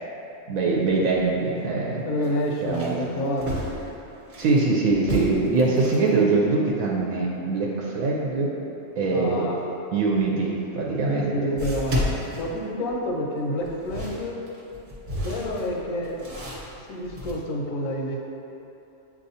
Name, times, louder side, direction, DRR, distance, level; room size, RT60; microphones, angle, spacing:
voice 1, 0.5-2.0 2.6-3.0 4.4-8.5 9.0-9.5 9.9-11.3, right 3 dB, 85° right, -3 dB, 1.0 m, -23 dB
sound 1, 1.1-1.2 1.6-1.7 2.2-4.6 5.0-6.1 10.3-10.4 11.6-13.1 13.6-17.3, equal, 40° right, 0.9 m, -32 dB
voice 2, 2.0-3.6 9.1-9.7 11.0-14.4 15.2-16.2 16.9-18.2, equal, 80° left, 0 dB, 1.0 m, -28 dB
7.2 x 2.7 x 2.7 m, 2.9 s
omnidirectional pair, 1.4 m